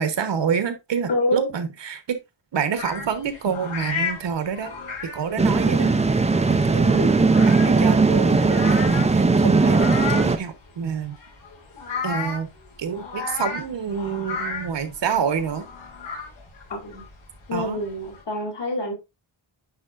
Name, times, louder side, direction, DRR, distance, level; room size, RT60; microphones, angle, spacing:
voice 1, 0.0-2.2 2.5-4.7 5.0-5.9 6.5-7.1 7.4-11.2 12.0-12.5 12.8-15.7 17.5-17.8, right 7 dB, 60° right, 1.0 m, -27 dB
voice 2, 1.1-1.5 16.7-17.0 17.5-18.9, left 1 dB, 60° left, 2.8 m, -26 dB
sound 1, 2.7-18.2, left 5 dB, 90° left, 4.2 m, -35 dB
sound 2, 5.4-10.4, right 3 dB, 15° right, 0.4 m, -18 dB
9.6 x 4.4 x 2.4 m
wide cardioid pair, 180°, 48 cm